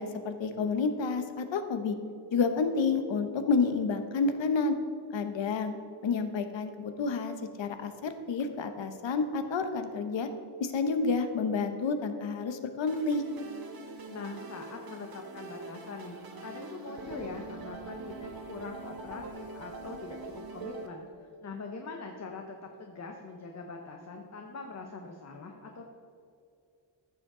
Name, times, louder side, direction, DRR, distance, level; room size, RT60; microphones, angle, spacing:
voice 1, 0.0-1.9 2.3-4.8 5.1-5.7 6.0-10.3 10.6-13.2, left 4 dB, 75° left, 8 dB, 0.9 m, -29 dB
sound 1, 12.9-20.9, right 3 dB, 50° right, 1.1 m, -43 dB
voice 2, 14.1-21.1 21.4-25.9, left 3 dB, 35° left, 2 dB, 0.8 m, -43 dB
15.0 x 6.4 x 3.7 m, 2.5 s
wide cardioid pair, 160°, 45 cm